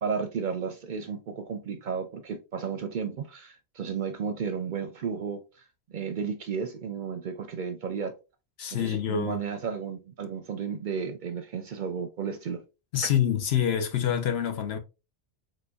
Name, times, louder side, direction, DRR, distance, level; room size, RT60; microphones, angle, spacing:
voice 1, 0.0-5.6 5.9-8.1 8.7-12.6, right 6 dB, 55° right, 0.6 m, -33 dB
voice 2, 8.6-9.4 12.9-14.8, left 9 dB, 70° left, 0.9 m, -26 dB
4.0 x 3.2 x 2.2 m
omnidirectional pair, 1.1 m